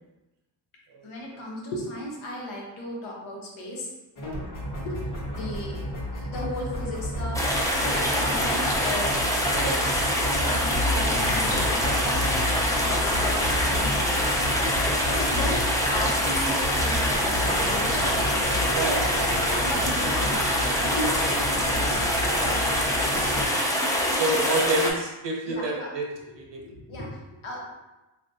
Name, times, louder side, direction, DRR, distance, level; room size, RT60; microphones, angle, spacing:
voice 1, 1.0-3.9 4.8-9.2 10.4-14.6 15.0-19.1 19.5-21.3 24.3-24.5 25.4-25.9 26.2-26.3 26.6-27.7, left 1 dB, 85° left, -2 dB, 1.0 m, -36 dB
sound 1, 4.2-23.4, left 1 dB, 40° left, 1.1 m, -31 dB
sound 2, 7.3-24.9, equal, 5° left, 0.4 m, -25 dB
voice 2, 9.5-10.0 18.7-19.3 24.2-26.1 26.4-26.6, right 2 dB, 60° right, 0 dB, 0.9 m, -28 dB
3.4 x 2.5 x 2.7 m, 1.0 s
cardioid pair, 100°, 47 cm